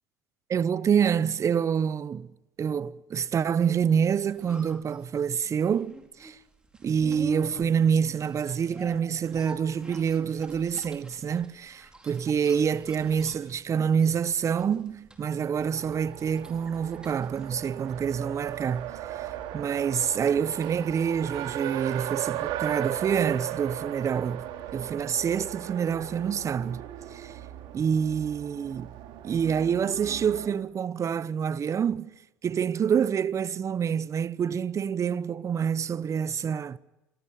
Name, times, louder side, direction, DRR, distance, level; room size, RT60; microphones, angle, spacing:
voice 1, 0.5-2.3 2.6-5.9 6.2-6.4 6.8-18.9 19.2-24.4 24.7-26.8 27.1-27.3 27.7-28.9 29.2-32.1 32.4-36.8, right 7 dB, 35° right, 0.9 m, -27 dB
sound 1, 4.0-21.9 22.2-22.3, right 1 dB, 10° right, 4.5 m, -47 dB
Race car auto racing, 15.6-30.5, right 12 dB, 60° right, 2.6 m, -37 dB
26.0 x 19.0 x 8.8 m
hypercardioid pair, 75°, 9 cm